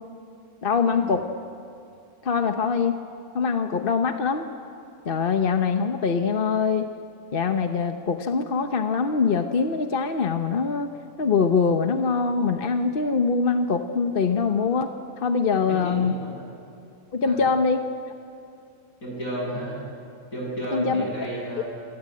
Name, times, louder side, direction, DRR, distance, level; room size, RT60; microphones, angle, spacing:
voice 1, 0.6-1.3 2.2-3.0 3.3-4.5 5.0-6.9 7.3-10.9 11.2-14.9 15.2-16.2 17.1-17.9 20.7-21.0, left 5 dB, 40° left, 6 dB, 1.0 m, -23 dB
voice 2, 15.7-16.4 17.2-17.4 19.0-19.8 20.3-21.6, equal, 65° left, -3 dB, 8.7 m, -32 dB
27.0 x 18.0 x 8.7 m, 2.6 s
omnidirectional pair, 1.6 m